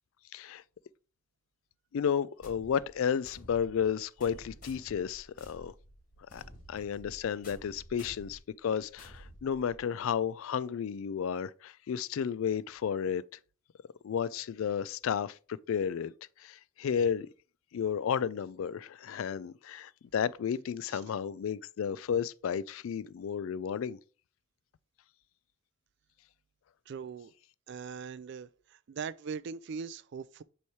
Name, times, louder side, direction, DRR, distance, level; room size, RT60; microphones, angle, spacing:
voice 1, 0.3-0.6 1.9-5.7 6.3-6.4 6.7-13.2 14.0-15.4 15.7-16.1 16.4-17.3 17.7-24.0, left 7 dB, 75° left, 0.3 m, -32 dB
sound 1, 2.4-10.1, equal, 40° left, 1.8 m, -52 dB
voice 2, 26.9-27.3 27.7-30.4, right 6 dB, 55° right, 0.3 m, -41 dB
7.0 x 3.2 x 4.7 m
head